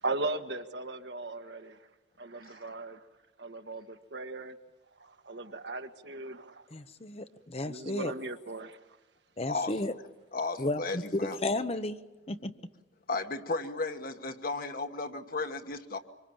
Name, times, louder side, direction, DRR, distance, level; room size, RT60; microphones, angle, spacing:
voice 1, 0.0-1.8 2.2-3.0 3.4-4.6 5.0-6.6 7.6-8.8, right 2 dB, 70° right, 1.6 m, -38 dB
voice 2, 6.7-8.1 9.4-9.9 10.6-10.8 11.1-12.0 12.3-12.6, left 2 dB, 35° left, 0.9 m, -32 dB
voice 3, 10.3-11.4 13.1-16.0, left 3 dB, 50° left, 1.5 m, -34 dB
25.5 x 25.5 x 8.9 m
head